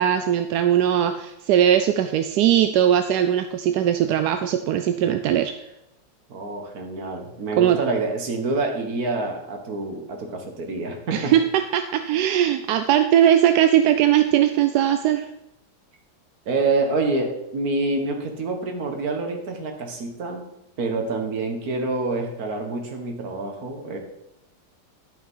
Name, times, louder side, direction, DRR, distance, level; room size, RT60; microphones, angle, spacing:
voice 1, 0.0-5.5 7.6-7.8 11.1-15.3, right 10 dB, 70° right, 8 dB, 1.0 m, -19 dB
voice 2, 6.3-11.4 16.5-20.5 20.8-24.0, right 3 dB, 55° right, 3 dB, 1.9 m, -27 dB
11.0 x 5.8 x 5.5 m, 0.88 s
omnidirectional pair, 2.0 m